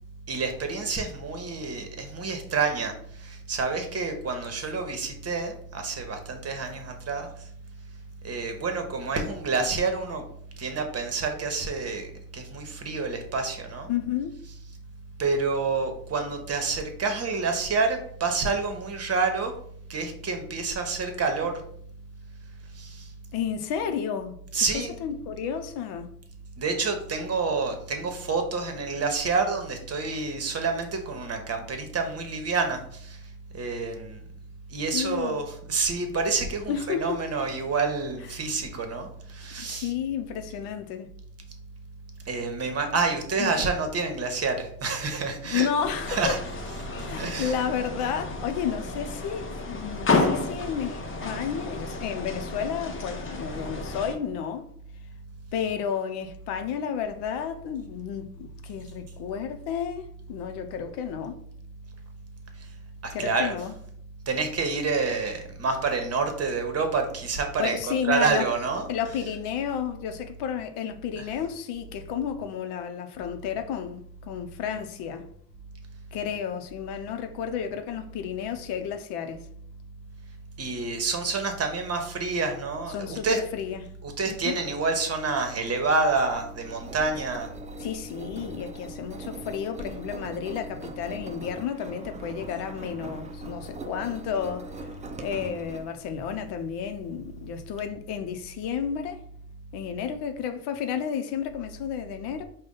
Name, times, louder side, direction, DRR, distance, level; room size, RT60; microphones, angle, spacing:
voice 1, 0.3-2.9 3.2-7.3 8.2-10.2 10.6-13.9 15.2-19.5 19.9-21.6 22.8-23.1 24.5-24.9 26.6-33.2 33.5-34.2 34.7-39.9 42.3-45.7 46.1-46.4 47.2-47.5 63.0-63.5 64.3-68.9 71.2-71.3 80.6-83.4 84.0-87.5, right 4 dB, 35° right, 1.1 m, -28 dB
voice 2, 13.9-14.4 23.3-24.3 24.7-26.1 34.9-35.4 36.7-37.2 39.6-41.1 43.4-43.7 45.5-46.4 46.9-54.6 55.5-61.4 63.1-63.7 67.6-68.5 68.9-75.3 76.1-79.5 82.9-84.0 84.3-84.6 87.8-94.9 95.2-99.2 99.7-102.4, left 8 dB, 65° left, 0.7 m, -32 dB
sound 1, 45.8-54.2, left 3 dB, 25° left, 0.9 m, -31 dB
Engine, 86.1-97.8, right 2 dB, 15° right, 0.5 m, -42 dB
4.8 x 2.3 x 3.8 m
hypercardioid pair, 70°, 44 cm